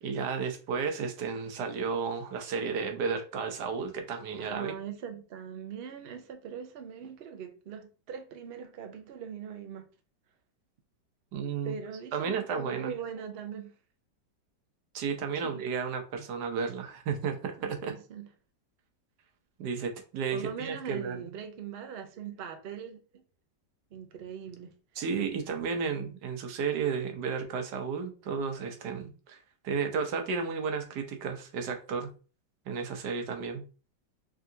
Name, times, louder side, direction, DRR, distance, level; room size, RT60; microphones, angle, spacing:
voice 1, 0.0-4.7 11.3-11.8 12.1-12.9 14.9-17.9 19.6-21.3 25.0-32.1 32.7-33.6, right 5 dB, 75° right, 1.3 m, -33 dB
voice 2, 4.4-9.9 11.6-13.7 15.4-15.6 17.6-18.3 20.3-23.2 23.9-24.8, right 7 dB, 90° right, 0.5 m, -41 dB
3.7 x 3.5 x 2.6 m
omnidirectional pair, 1.9 m